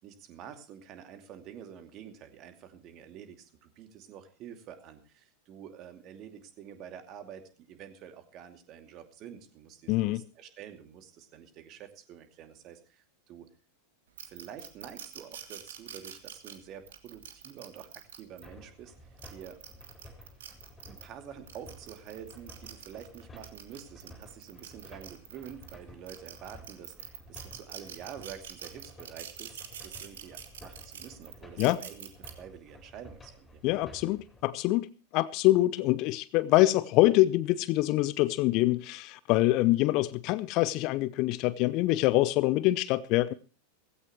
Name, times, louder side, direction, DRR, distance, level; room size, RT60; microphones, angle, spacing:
voice 1, 0.0-13.5 14.2-18.9 19.3-19.6 20.9-33.6, right 9 dB, 35° right, 2.5 m, -48 dB
voice 2, 9.9-10.2 31.6-31.8 33.6-34.9 35.1-43.3, left 17 dB, 40° left, 0.7 m, -25 dB
sound 1, 14.2-18.5 19.0-21.1 21.5-25.7 26.1-32.3, right 9 dB, 60° right, 2.1 m, -45 dB
sound 2, 18.4-34.4, left 1 dB, 10° left, 4.5 m, -53 dB
17.0 x 16.5 x 3.1 m
figure-of-eight pair, 90°, 0 cm